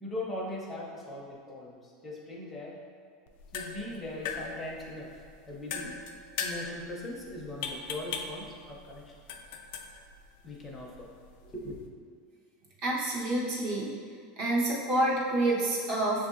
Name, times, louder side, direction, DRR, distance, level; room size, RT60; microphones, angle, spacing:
voice 1, 0.0-2.8 3.5-5.2 5.5-6.0 6.4-9.1 10.4-11.1 11.4-11.8, left 1 dB, 10° left, -3 dB, 0.6 m, -40 dB
sound 1, 3.3-11.9, left 6 dB, 65° left, 0.3 m, -41 dB
voice 2, 12.8-13.9 14.4-16.3, right 1 dB, 55° right, -4 dB, 0.9 m, -28 dB
6.4 x 2.6 x 2.5 m, 2.1 s
supercardioid pair, 160°, 0 cm